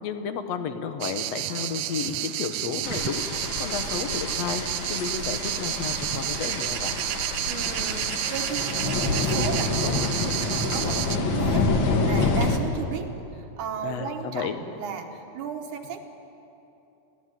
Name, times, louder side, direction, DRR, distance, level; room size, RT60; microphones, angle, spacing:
voice 1, 0.0-3.3 3.6-7.0 13.8-14.6, left 6 dB, 60° left, 8 dB, 2.0 m, -32 dB
sound 1, 1.0-11.2, right 14 dB, 85° right, 1.5 m, -30 dB
sound 2, 2.8-12.6, left 3 dB, 45° left, 1.8 m, -27 dB
voice 2, 7.5-16.0, right 6 dB, 70° right, 5 dB, 2.7 m, -35 dB
24.5 x 16.5 x 9.2 m, 3.0 s
omnidirectional pair, 3.8 m